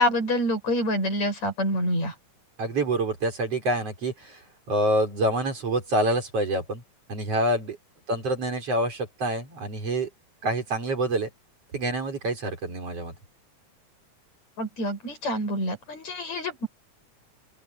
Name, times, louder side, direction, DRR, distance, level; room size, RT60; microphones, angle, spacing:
voice 1, 0.0-2.1 14.6-16.7, left 1 dB, 65° left, 8.8 m, -26 dB
voice 2, 2.6-4.4 4.7-6.8 7.1-7.8 8.1-10.1 10.4-11.3 11.7-13.1, right 1 dB, 55° right, 6.2 m, -26 dB
open air
omnidirectional pair, 3.3 m